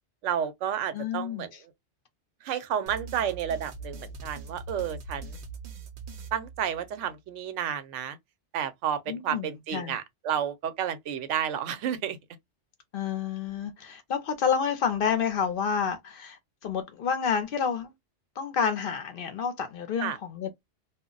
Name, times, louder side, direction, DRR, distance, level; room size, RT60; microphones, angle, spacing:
voice 1, 0.2-1.5 2.4-5.4 6.3-8.2 8.5-12.2 20.0-20.2, right 9 dB, 85° right, 0.9 m, -31 dB
voice 2, 0.9-1.5 9.1-10.0 12.9-17.9 18.4-20.5, left 7 dB, 60° left, 0.6 m, -29 dB
sound 1, 2.9-7.1, right 4 dB, 55° right, 0.7 m, -42 dB
2.2 x 2.0 x 3.7 m
omnidirectional pair, 1.2 m